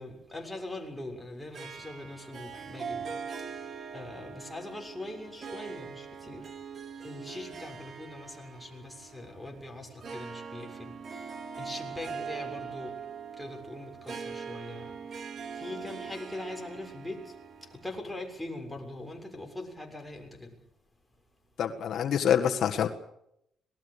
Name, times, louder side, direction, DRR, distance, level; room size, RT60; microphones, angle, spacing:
voice 1, 0.0-3.1 3.9-6.4 7.0-10.9 11.6-12.9 13.4-14.8 15.6-17.2 17.8-20.3, left 2 dB, 5° left, 2 dB, 6.8 m, -41 dB
Harp, 1.5-18.3, right 6 dB, 50° right, 3.4 m, -42 dB
voice 2, 21.6-22.9, left 9 dB, 65° left, 5 dB, 1.7 m, -26 dB
26.5 x 19.5 x 6.8 m, 0.77 s
cardioid pair, 90°, 0 cm